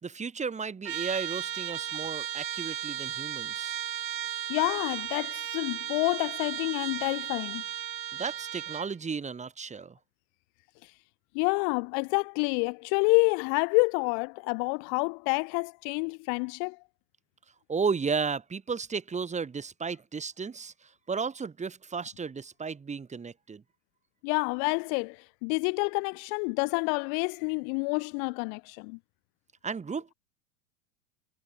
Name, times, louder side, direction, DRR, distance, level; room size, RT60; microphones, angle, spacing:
voice 1, 0.0-3.8 8.1-10.0 17.7-23.6 29.6-30.1, right 5 dB, 15° right, 2.1 m, -34 dB
Trumpet, 0.8-8.9, right 10 dB, 80° right, 1.3 m, -35 dB
voice 2, 4.5-7.6 11.3-16.8 24.2-29.0, left 40 dB or more, 40° left, 1.0 m, -28 dB
hypercardioid pair, 105°, 50 cm